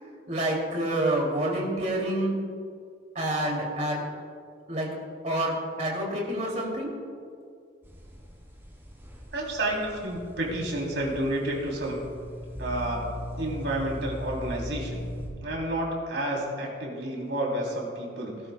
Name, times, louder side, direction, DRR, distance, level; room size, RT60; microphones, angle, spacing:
voice 1, 0.3-2.3 3.1-4.0 4.7-4.9 5.2-6.9, right 1 dB, 40° right, -2 dB, 2.7 m, -28 dB
sound 1, 7.8-15.3, left 1 dB, 15° right, 3.0 m, -39 dB
voice 2, 9.3-12.0 12.6-13.0 13.4-15.1 15.4-18.3, right 1 dB, 75° right, -2 dB, 3.3 m, -30 dB
18.5 x 12.5 x 2.3 m, 2.2 s
head